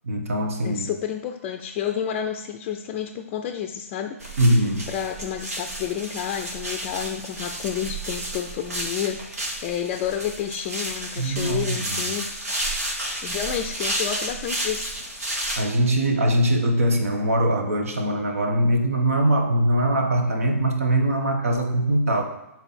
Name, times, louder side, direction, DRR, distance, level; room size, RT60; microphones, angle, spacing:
voice 1, 0.0-0.9 4.4-4.8 11.2-12.0 15.6-22.2, right 1 dB, 65° right, 4 dB, 1.3 m, -22 dB
voice 2, 0.6-4.2 4.9-12.3 13.2-14.9, left 9 dB, 30° left, 5 dB, 0.5 m, -30 dB
sound 1, 4.2-15.6, right 1 dB, 80° right, 1.9 m, -31 dB
6.9 x 4.2 x 4.2 m, 0.94 s
figure-of-eight pair, 130°, 8 cm